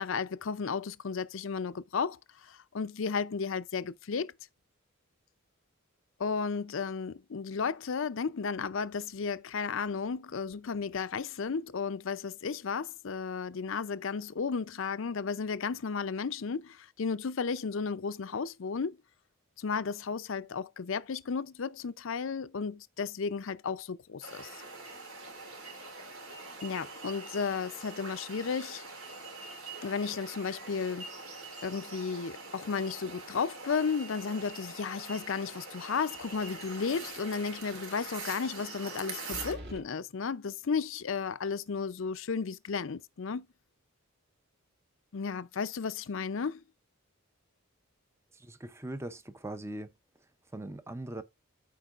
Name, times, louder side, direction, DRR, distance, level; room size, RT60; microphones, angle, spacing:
voice 1, 0.0-4.3 6.2-19.0 19.6-24.5 26.6-28.9 29.8-31.1 31.6-43.5 45.1-46.6, left 5 dB, 65° left, 0.5 m, -34 dB
sound 1, 24.2-39.5, right 3 dB, 80° right, 2.5 m, -44 dB
sound 2, 36.2-36.7 37.0-37.1 39.3-39.8, equal, 50° right, 2.3 m, -44 dB
voice 2, 48.3-49.9 50.5-51.2, right 1 dB, 15° right, 0.6 m, -40 dB
13.5 x 4.6 x 2.5 m
head